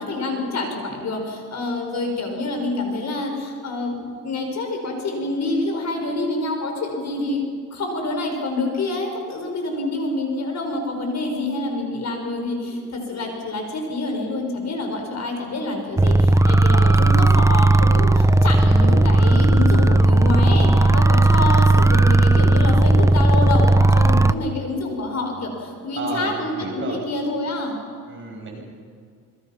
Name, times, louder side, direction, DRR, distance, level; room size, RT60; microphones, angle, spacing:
voice 1, 0.0-7.4 7.7-27.8, left 2 dB, 50° left, 3 dB, 5.4 m, -27 dB
sound 1, 16.0-24.3, right 2 dB, 10° right, 0.5 m, -15 dB
voice 2, 26.0-27.0 28.1-28.6, right 3 dB, 35° right, 0 dB, 6.5 m, -31 dB
27.0 x 22.5 x 5.9 m, 2.1 s
cardioid pair, 120°, 36 cm